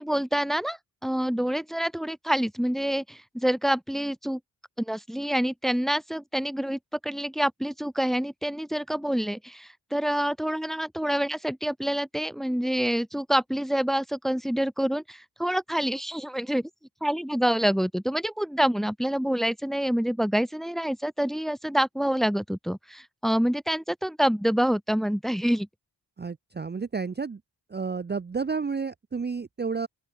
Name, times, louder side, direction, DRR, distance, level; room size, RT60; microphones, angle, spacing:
voice 1, 0.0-4.4 4.8-16.7 17.0-25.7, equal, ahead, 0.9 m, -27 dB
voice 2, 26.2-27.4 27.7-29.9, right 5 dB, 25° right, 0.6 m, -31 dB
open air
wide cardioid pair, 80°, 40 cm